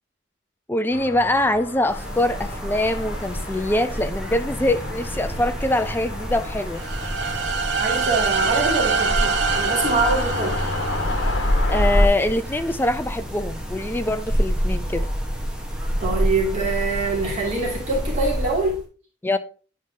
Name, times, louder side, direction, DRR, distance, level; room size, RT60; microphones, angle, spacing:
voice 1, 0.7-6.8 11.7-15.1 19.2-19.4, left 1 dB, 10° left, 0.4 m, -23 dB
sound 1, 0.9-12.1, left 1 dB, 80° left, 1.3 m, -28 dB
sound 2, 1.9-18.8, equal, 5° right, 1.1 m, -29 dB
sound 3, 6.8-11.6, right 6 dB, 65° right, 0.6 m, -25 dB
voice 2, 7.8-10.7 16.0-18.8, right 3 dB, 40° right, 2.5 m, -24 dB
10.0 x 4.7 x 2.7 m
head